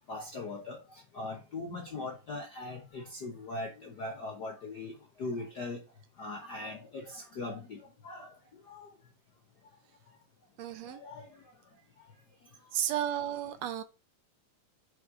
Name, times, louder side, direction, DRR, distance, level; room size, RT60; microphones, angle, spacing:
voice 1, 0.1-5.8 6.2-8.3 8.7-8.9 10.9-11.3, left 2 dB, 60° left, 1.0 m, -40 dB
voice 2, 10.6-11.0 12.7-13.8, right 11 dB, 70° right, 1.8 m, -33 dB
5.3 x 4.9 x 4.9 m
omnidirectional pair, 3.4 m